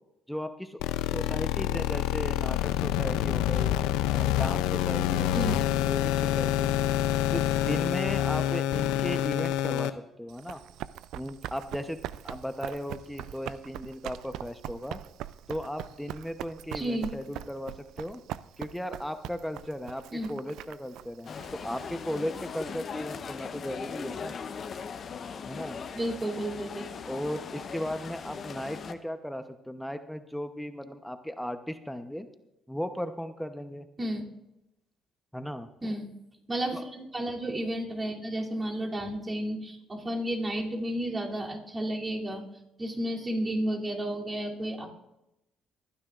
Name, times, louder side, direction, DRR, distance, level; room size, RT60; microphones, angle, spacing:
voice 1, 0.3-0.8 1.1-3.8 4.1-6.9 7.3-10.6 11.1-15.0 15.5-18.2 18.6-20.0 20.3-24.3 25.4-25.8 27.1-32.3 32.7-33.9 35.3-35.9 36.7-36.8, equal, 5° left, 8 dB, 0.9 m, -36 dB
sound 1, 0.8-9.9, left 13 dB, 90° left, 0.5 m, -27 dB
Run, 10.3-22.6, right 12 dB, 80° right, 0.3 m, -42 dB
voice 2, 16.7-17.1 20.1-20.3 25.9-26.9 34.0-34.2 35.8-36.1 36.5-42.4 42.8-44.9, right 1 dB, 30° right, -2 dB, 2.9 m, -32 dB
sound 2, 21.3-28.9, left 6 dB, 50° left, 0.9 m, -39 dB
24.0 x 9.8 x 2.5 m, 0.90 s
supercardioid pair, 70°, 0 cm